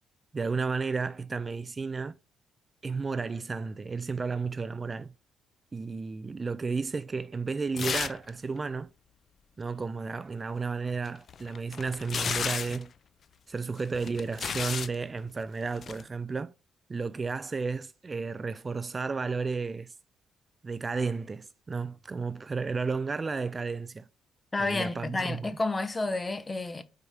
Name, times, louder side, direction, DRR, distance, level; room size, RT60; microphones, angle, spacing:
voice 1, 0.3-2.1 2.8-5.1 5.7-8.9 9.6-12.9 13.5-16.5 16.9-19.9 20.6-24.1 24.6-25.6, right 4 dB, 30° right, 0.4 m, -33 dB
sound 1, 7.8-8.3 8.6-8.7 11.0-12.9 13.8-14.9 15.7-16.0, left 7 dB, 50° left, 0.4 m, -33 dB
voice 2, 24.5-26.8, left 3 dB, 20° left, 0.9 m, -30 dB
4.8 x 4.7 x 5.5 m
cardioid pair, 90°, 0 cm